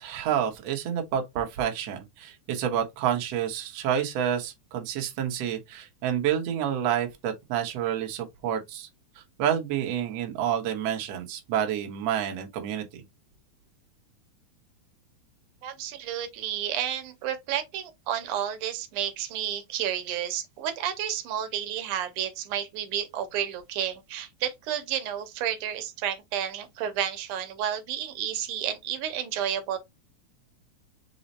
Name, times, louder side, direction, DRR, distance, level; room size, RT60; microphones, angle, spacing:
voice 1, 0.0-8.9 9.4-13.0, right 9 dB, 65° right, 1.8 m, -29 dB
voice 2, 15.6-29.8, right 10 dB, 85° right, 2.3 m, -31 dB
5.3 x 2.0 x 4.0 m
omnidirectional pair, 3.5 m